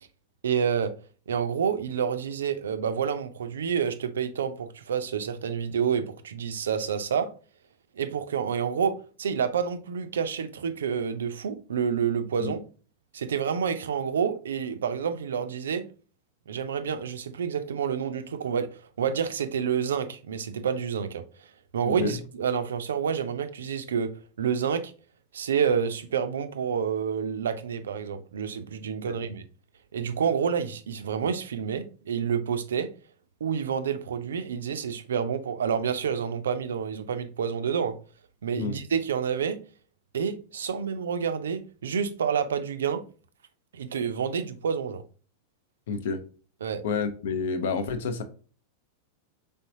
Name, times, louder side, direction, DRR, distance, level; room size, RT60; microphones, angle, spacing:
voice 1, 0.4-0.9 1.3-7.3 7.9-12.6 13.1-15.9 16.5-21.5 21.7-24.9 25.3-29.4 29.9-32.9 33.4-38.0 38.4-39.6 40.1-43.0 43.7-45.0 46.6-46.8, right 7 dB, 65° right, 0.4 m, -28 dB
voice 2, 21.8-22.2 29.1-29.2 38.6-38.8 45.9-46.2 46.8-48.2, left 5 dB, 55° left, 0.5 m, -29 dB
4.0 x 3.4 x 2.6 m
figure-of-eight pair, 90°, 0 cm